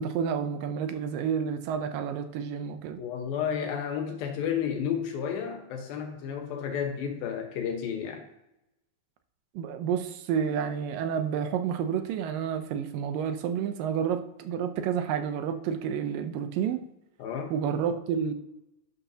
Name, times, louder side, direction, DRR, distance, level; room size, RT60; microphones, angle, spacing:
voice 1, 0.0-3.0 9.6-16.9 17.5-18.3, right 7 dB, 75° right, 2.2 m, -30 dB
voice 2, 3.0-8.2 17.2-17.5, left 8 dB, 75° left, 2.9 m, -32 dB
11.5 x 9.3 x 2.8 m
omnidirectional pair, 4.3 m